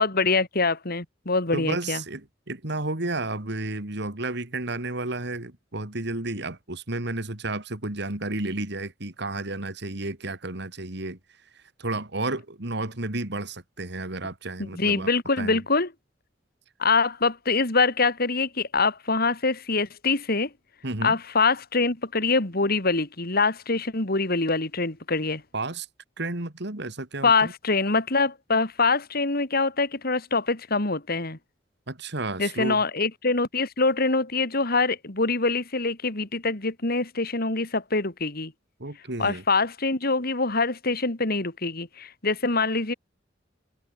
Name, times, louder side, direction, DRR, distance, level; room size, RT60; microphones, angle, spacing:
voice 1, 0.0-2.0 14.8-15.9 16.8-20.5 21.0-25.4 27.2-31.4 32.4-38.5 39.2-42.9, left 3 dB, 55° left, 2.9 m, -24 dB
voice 2, 1.5-15.1 15.4-15.6 20.8-21.2 25.5-25.9 26.2-27.5 31.9-32.8 38.8-39.4, right 2 dB, 65° right, 3.0 m, -32 dB
head